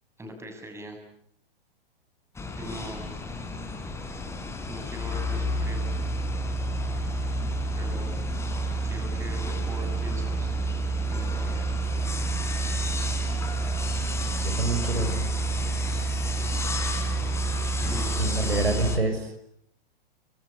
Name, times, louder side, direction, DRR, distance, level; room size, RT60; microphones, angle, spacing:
voice 1, 0.2-1.0 2.6-3.1 4.7-5.8 7.8-8.1 8.8-10.5 11.1-12.1 17.8-18.6, equal, 10° right, 5 dB, 7.1 m, -41 dB
sound 1, 2.3-19.0, right 2 dB, 10° left, 4.3 m, -29 dB
voice 2, 14.4-15.3 18.2-19.5, right 2 dB, 80° right, 8 dB, 5.6 m, -27 dB
27.5 x 26.0 x 8.3 m, 0.70 s
figure-of-eight pair, 110°, 30 cm